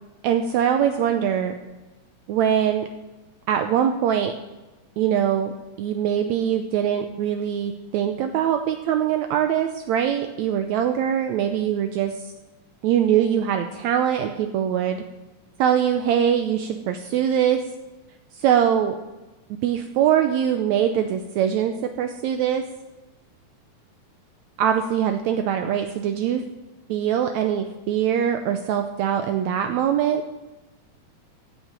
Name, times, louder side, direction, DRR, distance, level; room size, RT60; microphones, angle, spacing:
voice 1, 0.2-1.5 2.3-2.9 3.5-4.3 5.0-5.5 5.8-12.3 12.8-15.0 15.6-17.6 18.4-19.0 19.5-22.7 24.6-26.4 26.9-30.2, right 9 dB, 75° right, 6 dB, 1.8 m, -22 dB
16.0 x 9.3 x 5.3 m, 1.1 s
omnidirectional pair, 3.6 m